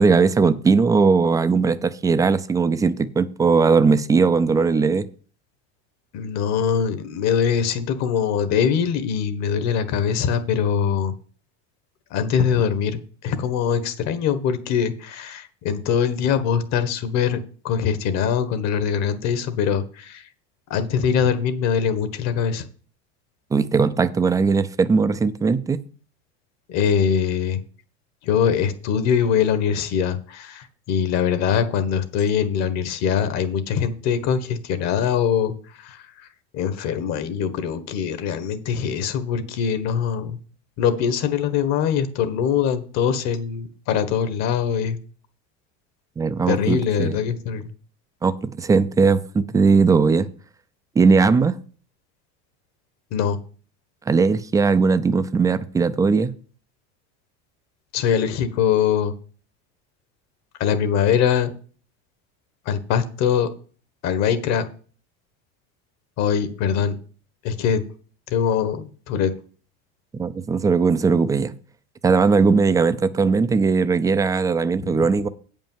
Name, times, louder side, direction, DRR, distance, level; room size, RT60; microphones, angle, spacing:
voice 1, 0.0-5.1 23.5-25.8 46.2-47.2 48.2-50.3 51.0-51.5 54.1-56.3 70.1-71.5 72.0-75.3, right 4 dB, 10° right, 0.4 m, -19 dB
voice 2, 6.1-11.1 12.1-20.2 20.7-22.6 26.7-27.6 28.2-36.0 36.5-40.4 40.8-45.0 46.5-47.7 53.1-53.4 57.9-59.1 60.6-61.5 62.6-63.5 64.0-64.6 66.2-67.0 67.4-67.8 68.3-69.3 74.9-75.0, left 7 dB, 55° left, 1.4 m, -22 dB
8.8 x 5.4 x 7.3 m
cardioid pair, 150°, 33 cm